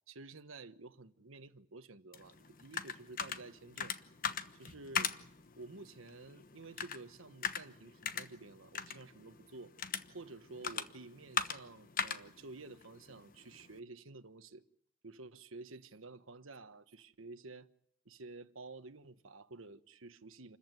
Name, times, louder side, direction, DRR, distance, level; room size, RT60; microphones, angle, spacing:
voice 1, 0.1-3.9 4.5-5.2 5.6-9.7 10.1-14.6 15.0-17.7 18.0-20.6, right 3 dB, 80° right, 1.2 m, -51 dB
sound 1, 2.1-13.8, left 7 dB, 45° left, 1.1 m, -41 dB
28.0 x 14.5 x 9.2 m
head